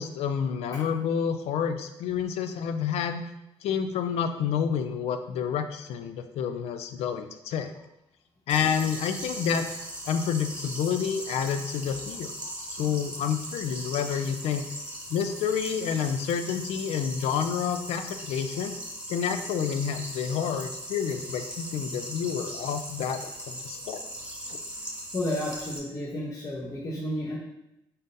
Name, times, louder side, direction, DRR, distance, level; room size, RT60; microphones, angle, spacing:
voice 1, 0.0-3.2 3.6-7.7 8.5-9.7 10.1-12.3 12.6-14.6 15.1-18.7 19.1-24.0 24.5-24.6, left 7 dB, 70° left, 9 dB, 0.4 m, -29 dB
sound 1, 8.5-25.8, right 1 dB, 10° right, 1.1 m, -39 dB
voice 2, 25.1-27.4, left 1 dB, 30° left, -5 dB, 0.8 m, -31 dB
4.0 x 3.5 x 2.6 m, 0.86 s
supercardioid pair, 75°, 11 cm